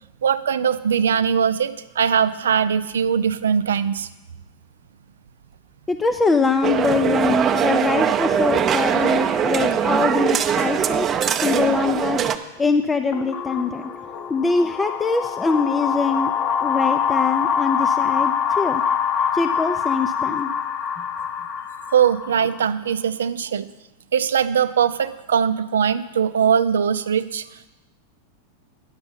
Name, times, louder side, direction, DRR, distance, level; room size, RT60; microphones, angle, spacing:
voice 1, 0.2-4.1 21.9-23.7 24.1-27.6, right 7 dB, 75° right, 13 dB, 0.4 m, -21 dB
voice 2, 5.9-12.3 12.6-13.8 14.3-16.3 16.6-18.8 19.3-20.5, left 4 dB, 15° left, 7 dB, 0.5 m, -23 dB
sound 1, 6.6-12.4, right 8 dB, 30° right, 0.6 m, -21 dB
sound 2, 13.1-22.6, left 8 dB, 35° left, 0.9 m, -24 dB
10.5 x 6.8 x 5.6 m, 1.0 s
hypercardioid pair, 95°, 0 cm